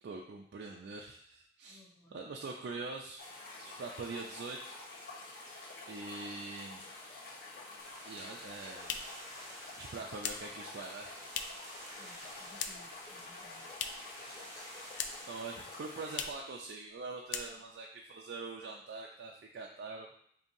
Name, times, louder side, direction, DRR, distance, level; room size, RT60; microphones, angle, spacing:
voice 1, 0.0-1.8 2.1-4.8 5.5-6.8 8.1-9.0 9.7-11.1 14.2-14.4 15.3-20.1, right 3 dB, 75° right, 0 dB, 0.4 m, -44 dB
voice 2, 1.6-2.2 12.0-13.7 17.4-17.6, left 1 dB, 15° left, -4 dB, 0.8 m, -60 dB
sound 1, 3.2-16.3, left 2 dB, 55° left, 0.9 m, -49 dB
sound 2, 7.8-16.2, right 1 dB, 15° right, 0.5 m, -53 dB
sound 3, 8.4-11.8 12.0-13.0 13.3-14.2 14.5-15.4 15.7-15.8 16.1-16.5 16.8-17.0 17.2-17.9, left 7 dB, 85° left, 0.3 m, -41 dB
5.2 x 2.7 x 2.6 m, 0.68 s
head